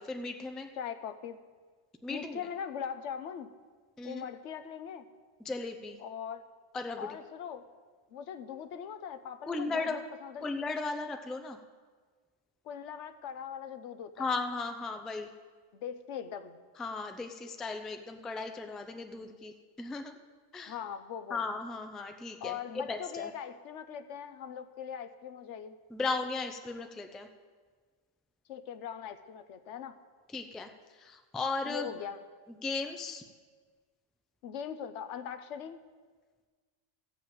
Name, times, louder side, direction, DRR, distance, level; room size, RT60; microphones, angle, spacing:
voice 1, 0.0-0.7 2.0-2.4 4.0-4.2 5.4-6.0 6.7-7.1 9.5-10.0 10.4-11.6 14.2-15.3 16.8-20.2 20.5-20.7 21.3-23.3 25.9-27.3 30.3-30.7 31.0-31.9 32.5-33.2, left 3 dB, ahead, 6 dB, 0.4 m, -36 dB
voice 2, 0.8-1.4 2.1-3.5 4.0-5.0 6.0-6.5 7.0-7.6 8.1-10.5 12.6-14.3 15.7-16.6 20.6-21.4 22.4-25.8 28.5-30.0 31.6-32.2 34.4-35.8, left 8 dB, 85° left, 11 dB, 1.0 m, -41 dB
15.0 x 5.5 x 7.7 m, 1.5 s
omnidirectional pair, 1.2 m